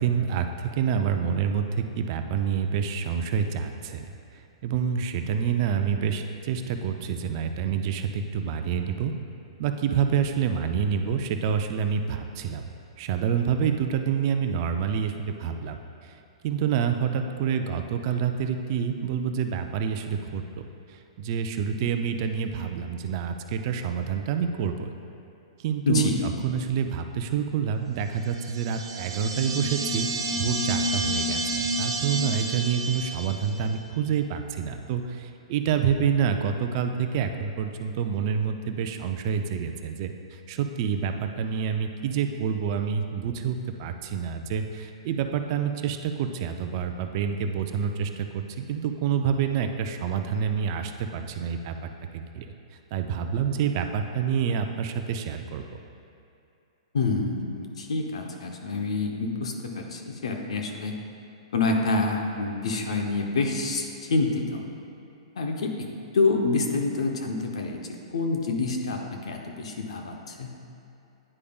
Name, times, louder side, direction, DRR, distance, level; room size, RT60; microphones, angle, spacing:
voice 1, 0.0-4.1 4.3-9.1 9.6-12.7 13.0-20.4 20.9-24.9 25.6-30.1 30.3-52.5 52.9-55.8, right 7 dB, 45° right, 6 dB, 0.4 m, -27 dB
voice 2, 25.9-26.2 56.9-60.9 61.5-64.6 65.4-65.9 66.1-67.8 68.1-70.5, left 3 dB, 75° left, 2 dB, 0.8 m, -27 dB
sound 1, 28.3-33.7, right 1 dB, 65° right, 0.9 m, -30 dB
9.7 x 4.9 x 2.4 m, 2.7 s
hypercardioid pair, 130°, 3 cm